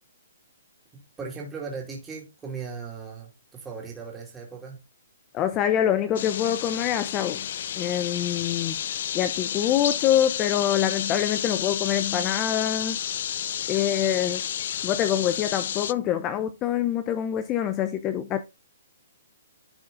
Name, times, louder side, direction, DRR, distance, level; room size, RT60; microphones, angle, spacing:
voice 1, 1.2-4.8, right 5 dB, 10° right, 2.5 m, -37 dB
voice 2, 5.3-7.4 7.8-8.8 9.1-13.0 13.7-14.4 14.8-18.4, left 10 dB, 25° left, 0.7 m, -25 dB
sound 1, 6.2-15.9, left 10 dB, 55° left, 0.3 m, -31 dB
11.5 x 4.2 x 3.7 m
hypercardioid pair, 145°, 0 cm